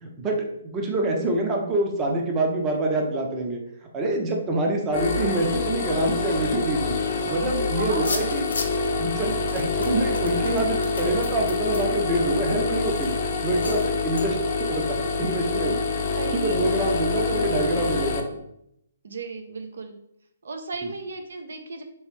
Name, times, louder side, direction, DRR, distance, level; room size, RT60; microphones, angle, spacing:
voice 1, 0.0-3.6 3.9-6.9 7.3-8.5 9.0-13.1 13.4-15.8 16.3-18.2, right 2 dB, 20° right, 1 dB, 0.6 m, -26 dB
sound 1, 4.9-18.2, left 4 dB, 35° left, 0.5 m, -26 dB
voice 2, 7.8-8.5 8.8-9.0 9.5-9.7 16.1-17.9 19.0-20.0 20.4-21.8, right 3 dB, 80° right, 5 dB, 0.6 m, -35 dB
sound 2, 7.9-8.9 9.5-12.5 13.0-13.1 13.6-13.9 14.2-14.3, left 4 dB, 80° left, 0.6 m, -35 dB
3.3 x 3.1 x 3.2 m, 0.77 s
hypercardioid pair, 155°, 0 cm